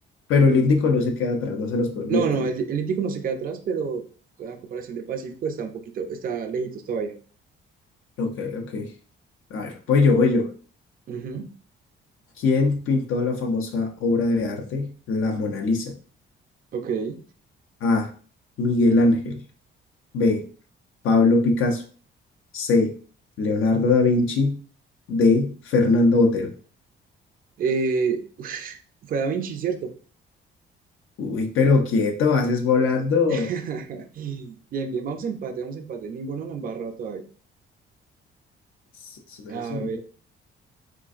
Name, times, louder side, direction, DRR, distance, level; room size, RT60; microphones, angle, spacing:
voice 1, 0.3-2.5 8.2-8.9 9.5-10.5 12.4-15.9 17.8-18.1 18.6-19.4 20.1-20.4 21.0-21.8 22.5-22.9 23.4-24.6 25.1-26.5 31.2-33.5 39.0-40.0, left 3 dB, 80° left, 4 dB, 0.6 m, -21 dB
voice 2, 2.1-4.0 4.4-7.1 11.1-11.5 16.7-17.2 27.6-28.8 29.0-29.9 33.3-37.2 39.5-40.0, right 5 dB, 45° right, 5 dB, 0.4 m, -29 dB
3.7 x 2.4 x 2.4 m, 0.40 s
cardioid pair, 120°, 21 cm